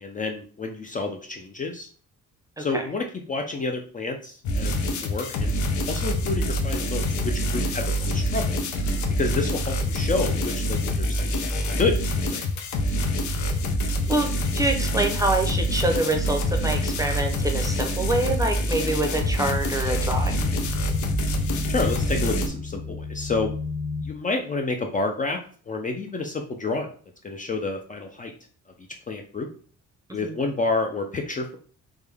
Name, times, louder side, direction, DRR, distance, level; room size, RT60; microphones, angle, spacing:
voice 1, 0.0-1.9 2.6-4.8 5.0-5.6 5.9-8.6 9.2-12.0 12.3-12.4 21.7-23.5 24.0-25.4 25.7-26.9 27.2-28.3 29.1-29.5 30.1-31.6, left 3 dB, 25° left, 3 dB, 0.5 m, -29 dB
sound 1, 4.4-22.5, equal, 75° left, 0.7 m, -26 dB
voice 2, 14.1-20.5 30.1-30.4, right 2 dB, 10° right, 3 dB, 0.7 m, -26 dB
sound 2, 19.8-24.1, left 4 dB, 55° left, 1.2 m, -32 dB
3.5 x 2.2 x 3.4 m, 0.44 s
cardioid pair, 90°, 30 cm